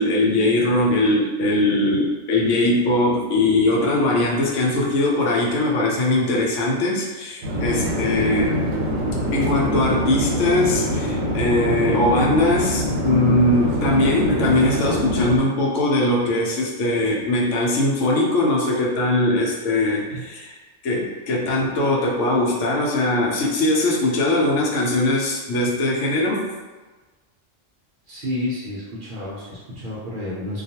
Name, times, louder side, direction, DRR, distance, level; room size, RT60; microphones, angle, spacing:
voice 1, 0.0-8.6 9.3-20.5 20.8-26.5, left 2 dB, 75° left, -3 dB, 0.9 m, -20 dB
Conversation / Chatter / Fixed-wing aircraft airplane, 7.4-15.4, equal, 85° right, 1.0 m, -24 dB
voice 2, 28.1-30.6, left 1 dB, 55° right, -7 dB, 0.6 m, -30 dB
2.3 x 2.3 x 2.8 m, 1.3 s
omnidirectional pair, 1.3 m